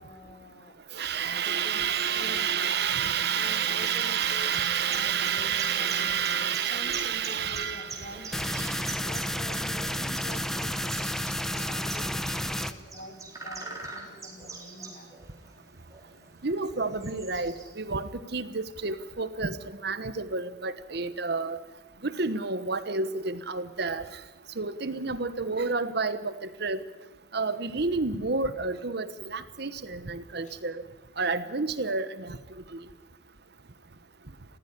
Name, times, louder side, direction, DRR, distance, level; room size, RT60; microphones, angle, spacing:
voice 1, 0.0-0.7 1.1-2.7 3.3-4.5 4.9-6.1 6.4-8.5 9.0-11.0 11.5-15.1 30.4-30.6, left 1 dB, 40° left, 6 dB, 2.9 m, -46 dB
voice 2, 0.9-8.9 16.4-21.6 22.0-24.2 24.5-26.8 27.3-30.8 31.2-32.8, right 5 dB, 60° right, 13 dB, 1.2 m, -30 dB
sound 1, 1.5-18.1, right 3 dB, 20° right, 3.7 m, -45 dB
sound 2, 8.3-12.7, equal, ahead, 0.8 m, -31 dB
20.0 x 15.5 x 9.9 m, 1.2 s
head